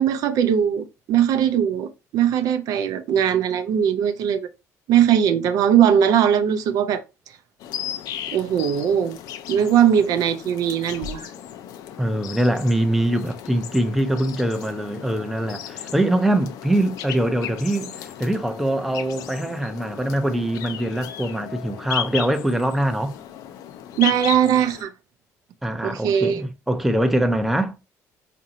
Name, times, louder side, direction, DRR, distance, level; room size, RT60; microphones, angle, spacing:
voice 1, 0.0-1.9 2.1-4.5 4.9-7.0 8.3-9.2 9.5-11.3 24.0-24.9 25.8-26.4, right 9 dB, 70° right, 0.4 m, -20 dB
sound 1, 7.6-24.8, left 10 dB, 75° left, 0.4 m, -35 dB
voice 2, 12.0-23.2 25.6-27.7, right 1 dB, 5° right, 0.4 m, -23 dB
4.0 x 2.6 x 2.7 m
cardioid pair, 125°, 6 cm